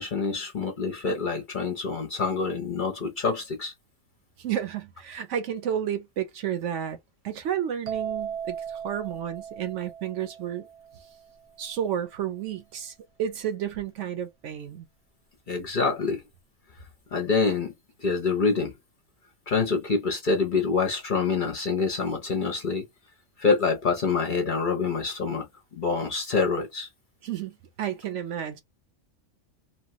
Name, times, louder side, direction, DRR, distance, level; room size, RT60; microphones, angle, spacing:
voice 1, 0.0-3.7 15.5-16.2 17.1-17.7 18.0-18.7 19.5-22.8 23.4-25.5 25.8-26.9, left 4 dB, 45° left, 0.7 m, -26 dB
voice 2, 4.4-7.0 7.2-10.7 11.6-14.9 27.2-28.6, right 9 dB, 70° right, 1.0 m, -31 dB
sound 1, 7.9-11.5, right 8 dB, 45° right, 0.6 m, -37 dB
2.9 x 2.2 x 2.7 m
omnidirectional pair, 1.4 m